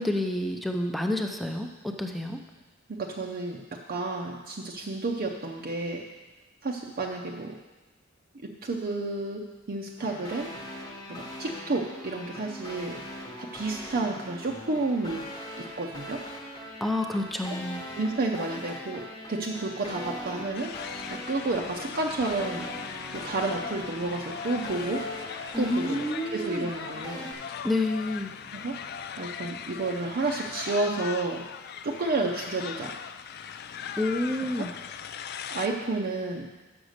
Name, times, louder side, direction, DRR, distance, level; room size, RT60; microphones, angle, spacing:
voice 1, 0.0-2.4 16.8-17.8 25.5-26.7 27.6-28.3 34.0-34.7, left 1 dB, ahead, 4 dB, 0.6 m, -29 dB
voice 2, 2.9-3.6 3.9-6.1 6.6-7.6 8.4-10.5 11.1-13.0 13.4-15.2 15.6-16.2 17.5-17.6 18.0-20.7 21.1-22.7 23.1-25.1 25.6-27.3 28.5-28.8 29.2-31.4 31.8-33.0 34.6-34.7 35.5-36.5, right 3 dB, 50° right, -1 dB, 0.6 m, -31 dB
sound 1, 10.0-27.3, left 1 dB, 20° left, 1.1 m, -41 dB
sound 2, 20.5-35.7, left 7 dB, 55° left, 0.3 m, -39 dB
6.4 x 6.0 x 6.5 m, 1.2 s
head